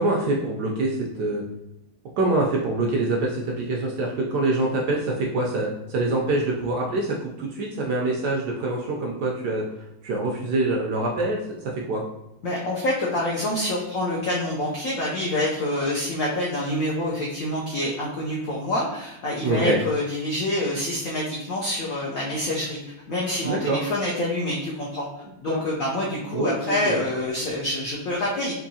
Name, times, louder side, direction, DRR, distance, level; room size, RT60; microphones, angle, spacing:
voice 1, 0.0-1.4 2.2-9.6 10.0-11.4 11.8-12.0 19.4-19.8 23.4-23.8 25.4-25.6 26.3-27.0, right 2 dB, 75° right, -1 dB, 1.0 m, -25 dB
voice 2, 12.4-22.8 23.1-25.1 25.4-28.5, left 1 dB, 80° left, -4 dB, 0.7 m, -26 dB
4.4 x 2.6 x 2.7 m, 0.93 s
omnidirectional pair, 2.2 m